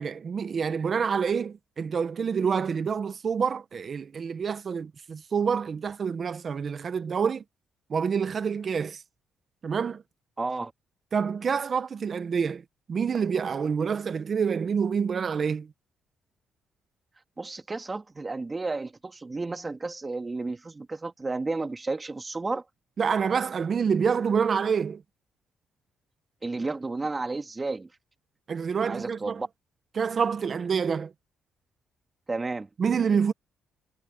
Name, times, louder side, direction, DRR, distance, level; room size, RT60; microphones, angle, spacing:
voice 1, 0.0-7.4 7.9-9.0 9.6-10.0 11.1-12.6 12.9-15.7 23.0-25.0 28.5-29.4 29.9-31.1 32.8-33.3, right 6 dB, 45° right, 1.2 m, -27 dB
voice 2, 10.4-10.7 17.4-22.6 26.4-27.9 28.8-29.5 32.3-32.7, right 3 dB, 25° right, 2.7 m, -32 dB
cardioid pair, 90°, 0 cm